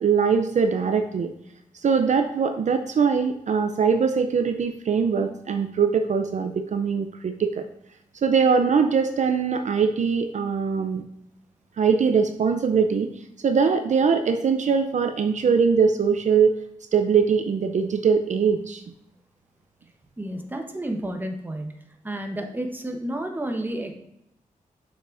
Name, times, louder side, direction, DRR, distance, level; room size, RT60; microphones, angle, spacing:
voice 1, 0.0-1.3 1.8-7.6 8.2-11.0 11.8-13.1 13.4-16.5 16.9-18.8, right 6 dB, 60° right, 7 dB, 0.5 m, -22 dB
voice 2, 20.2-21.7 22.0-23.9, right 1 dB, 15° right, 3 dB, 1.0 m, -31 dB
7.2 x 5.8 x 2.5 m, 0.80 s
cardioid pair, 90°, 14 cm